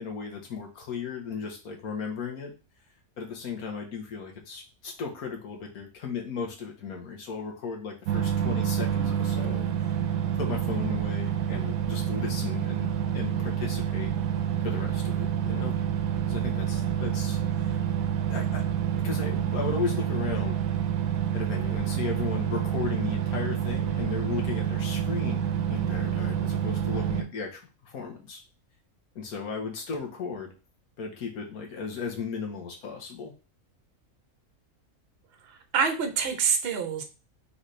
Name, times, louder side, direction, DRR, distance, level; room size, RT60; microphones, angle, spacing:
voice 1, 0.0-2.5 3.2-9.7 10.3-14.1 14.6-15.7 16.3-17.8 18.2-18.6 19.0-20.6 21.3-28.4 29.1-30.5 31.0-33.3, left 5 dB, 90° left, 2 dB, 1.7 m, -35 dB
sound 1, 8.1-27.2, right 9 dB, 75° right, 1.0 m, -28 dB
voice 2, 35.5-37.0, right 6 dB, 50° right, 6 dB, 0.9 m, -26 dB
4.1 x 4.0 x 3.2 m, 0.33 s
omnidirectional pair, 1.5 m